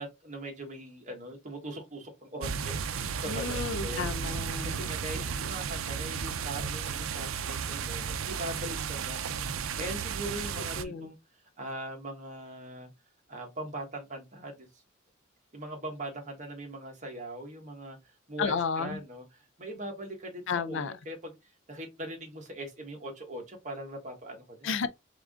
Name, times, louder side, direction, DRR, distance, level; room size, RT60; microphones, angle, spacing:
voice 1, 0.0-4.1 4.6-9.2 9.8-11.2 11.6-12.9 13.3-14.7 15.5-18.0 18.3-21.4 21.7-24.7, right 1 dB, 35° right, 1.4 m, -41 dB
sound 1, 2.4-10.8, right 6 dB, 80° right, 0.5 m, -34 dB
voice 2, 3.3-4.9 5.1-5.5 10.6-11.1 18.4-19.0 20.5-20.9 24.6-24.9, left 5 dB, 65° left, 0.4 m, -33 dB
3.7 x 3.6 x 3.5 m
head